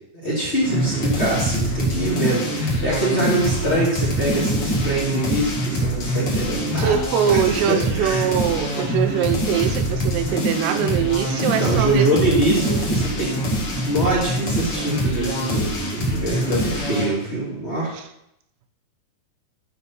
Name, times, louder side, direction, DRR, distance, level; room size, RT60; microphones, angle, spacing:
voice 1, 0.2-7.0 7.3-7.4 7.7-8.2 11.5-13.3 13.8-18.0, right 1 dB, 25° left, -6 dB, 1.5 m, -24 dB
sound 1, 0.6-17.1, equal, 45° left, 1.8 m, -24 dB
voice 2, 6.8-12.2, right 9 dB, 90° right, 9 dB, 3.5 m, -22 dB
12.0 x 5.5 x 5.8 m, 0.79 s
omnidirectional pair, 5.7 m